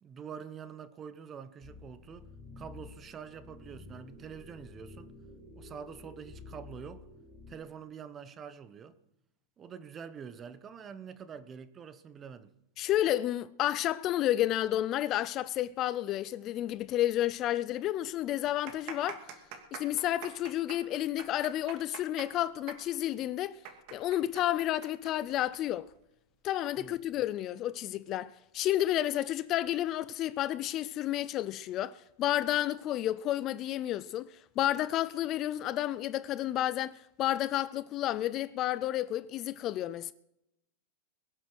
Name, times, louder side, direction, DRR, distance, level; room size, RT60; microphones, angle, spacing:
voice 1, 0.0-2.3 2.6-5.1 5.5-7.1 7.5-9.0 9.6-12.5 26.8-27.0, right 7 dB, 20° right, 1.0 m, -46 dB
sound 1, 1.6-7.5, left 3 dB, 5° left, 6.4 m, -50 dB
voice 2, 12.8-19.3 19.7-23.6 23.9-25.9 26.4-40.1, left 13 dB, 35° left, 0.4 m, -31 dB
sound 2, 17.2-17.3 17.6-17.7 18.3-25.6 25.9-26.0 26.7-27.0, right 8 dB, 50° right, 2.6 m, -45 dB
22.0 x 8.0 x 6.2 m
supercardioid pair, 140°, 0 cm